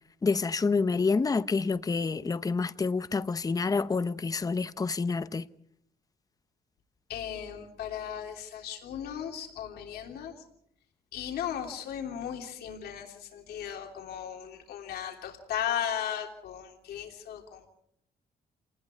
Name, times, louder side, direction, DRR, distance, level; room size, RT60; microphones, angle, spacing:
voice 1, 0.2-5.5, left 4 dB, 25° left, 0.8 m, -28 dB
voice 2, 7.1-10.3 11.1-17.7, left 9 dB, 90° left, 3.4 m, -36 dB
29.0 x 19.5 x 4.6 m
cardioid pair, 115°, 16 cm